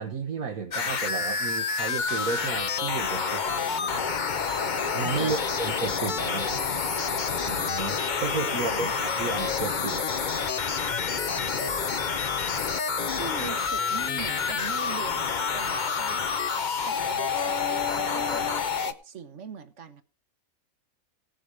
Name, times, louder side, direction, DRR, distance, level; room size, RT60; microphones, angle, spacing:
voice 1, 0.0-4.1 4.9-6.6 7.5-10.0, right 5 dB, 80° right, 1.7 m, -33 dB
sound 1, 0.7-18.9, left 5 dB, 40° left, 0.8 m, -28 dB
sound 2, 3.1-14.6 14.9-18.6, left 5 dB, 65° left, 1.8 m, -40 dB
voice 2, 5.1-5.6 8.7-8.9 13.2-16.3 16.9-20.0, right 6 dB, 60° right, 1.4 m, -41 dB
17.0 x 7.6 x 4.9 m
omnidirectional pair, 1.4 m